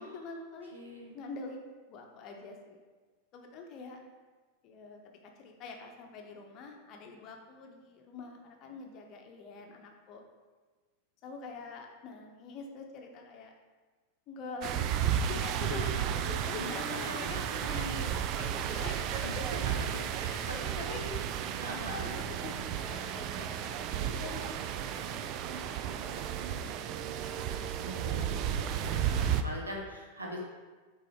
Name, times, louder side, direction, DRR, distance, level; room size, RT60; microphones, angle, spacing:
voice 1, 0.0-1.6 1.9-2.8 3.3-4.0 4.6-10.2 11.2-13.5 14.3-19.5 20.4-21.0 21.8-27.8, left 4 dB, 35° left, 2 dB, 0.9 m, -46 dB
voice 2, 0.7-1.1 16.6-18.1 19.1-19.3 20.1-22.1 27.8-30.4, left 1 dB, 75° right, -1 dB, 1.2 m, -42 dB
sound 1, 14.6-29.4, right 9 dB, 40° right, 0.3 m, -33 dB
6.1 x 3.9 x 4.5 m, 1.3 s
figure-of-eight pair, 90°, 0 cm